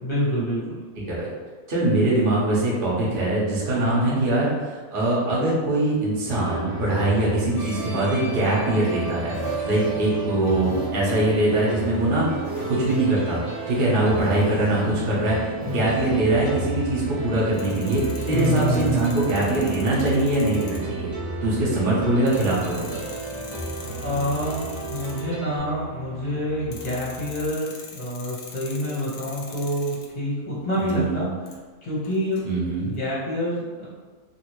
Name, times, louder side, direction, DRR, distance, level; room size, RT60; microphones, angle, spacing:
voice 1, 0.0-0.8 3.8-4.2 18.3-19.2 23.8-31.3 31.8-32.4 32.8-33.8, equal, 30° left, -9 dB, 0.9 m, -27 dB
voice 2, 1.7-12.3 12.7-15.4 15.6-21.1 21.4-23.0 30.8-31.2 32.4-32.9, right 2 dB, 40° right, -7 dB, 0.9 m, -22 dB
sound 1, 6.2-25.6, right 2 dB, 60° right, 1.0 m, -34 dB
sound 2, 7.6-27.5, right 1 dB, 20° right, 1.0 m, -37 dB
sound 3, 17.5-21.0 21.7-21.8 22.3-25.2 26.7-30.1 30.6-31.0 31.5-31.6 32.0-33.0, left 4 dB, 75° left, 1.0 m, -43 dB
3.0 x 2.6 x 3.0 m, 1.4 s
omnidirectional pair, 1.6 m